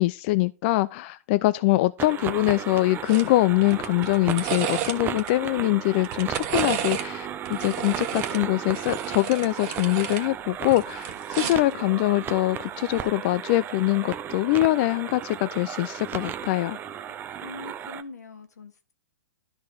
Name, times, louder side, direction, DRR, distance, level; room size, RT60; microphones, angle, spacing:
voice 1, 0.0-16.8, left 18 dB, 45° left, 0.4 m, -23 dB
sound 1, 2.0-18.0, right 9 dB, 25° right, 0.6 m, -35 dB
sound 2, 3.1-3.3 3.6-5.3 5.9-7.1 7.5-10.3 10.6-11.7 12.9-13.1, right 10 dB, 40° right, 1.3 m, -32 dB
sound 3, 4.3-5.2 6.8-7.4 8.9-9.4 10.9-11.3 12.6-13.2, right 6 dB, 80° right, 1.5 m, -49 dB
voice 2, 11.4-12.2 17.1-17.2 17.4-18.9, left 4 dB, 80° left, 1.5 m, -43 dB
12.0 x 4.3 x 4.2 m
hypercardioid pair, 115°, 9 cm